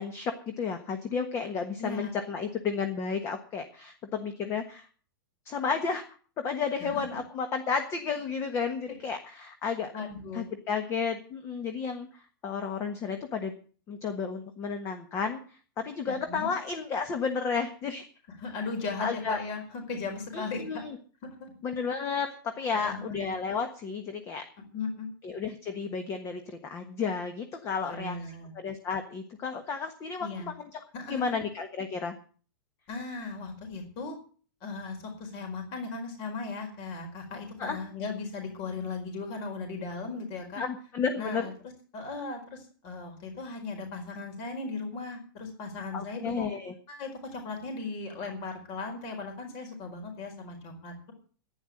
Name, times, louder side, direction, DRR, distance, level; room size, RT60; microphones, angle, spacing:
voice 1, 0.0-4.9 5.4-6.0 6.4-9.9 10.3-13.5 13.9-15.4 15.8-18.1 19.0-19.4 20.3-21.0 21.6-24.4 25.2-28.2 28.5-30.8 31.1-32.1 37.6-37.8 40.6-41.5 45.9-46.7, left 5 dB, 25° left, 7 dB, 1.4 m, -32 dB
voice 2, 1.8-2.1 6.8-7.0 9.9-10.5 16.1-16.5 18.4-20.8 21.4-21.5 22.7-23.2 24.7-25.1 27.8-28.5 30.2-30.5 30.9-31.3 32.9-34.2 34.6-40.6 41.1-41.5 41.9-46.5 46.9-51.1, left 4 dB, 40° left, 3 dB, 4.7 m, -37 dB
11.5 x 10.0 x 7.8 m, 0.42 s
supercardioid pair, 155°, 11 cm